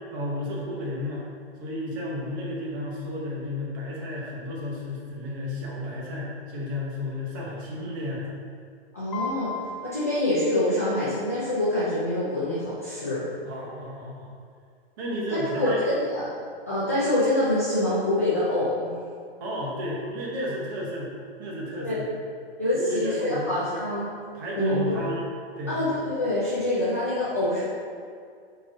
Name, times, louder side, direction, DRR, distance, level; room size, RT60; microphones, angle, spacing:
voice 1, 0.1-1.3 1.6-8.3 13.4-14.3 15.0-15.8 19.4-21.1 21.4-22.0 22.7-23.8 24.3-25.3 25.6-25.8, left 1 dB, 20° right, -3 dB, 0.8 m, -32 dB
voice 2, 8.9-9.5 9.8-13.2 15.3-16.3 16.7-18.9 21.8-22.0 22.6-24.1 24.5-25.0 25.7-27.6, left 1 dB, 15° left, -10 dB, 0.4 m, -25 dB
Piano, 9.1-11.2, left 3 dB, 40° left, 0.8 m, -37 dB
8.6 x 3.8 x 3.9 m, 2.2 s
hypercardioid pair, 175°, 32 cm